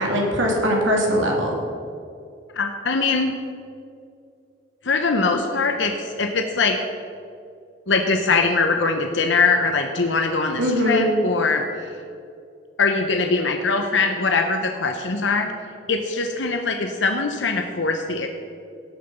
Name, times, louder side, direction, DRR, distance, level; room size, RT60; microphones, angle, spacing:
voice 1, 0.0-1.6 10.6-11.1, equal, 85° right, -1 dB, 2.6 m, -21 dB
voice 2, 2.5-3.3 4.8-6.8 7.9-11.7 12.8-15.5 15.9-18.3, left 4 dB, 75° left, 4 dB, 0.9 m, -22 dB
17.5 x 6.8 x 5.5 m, 2.4 s
head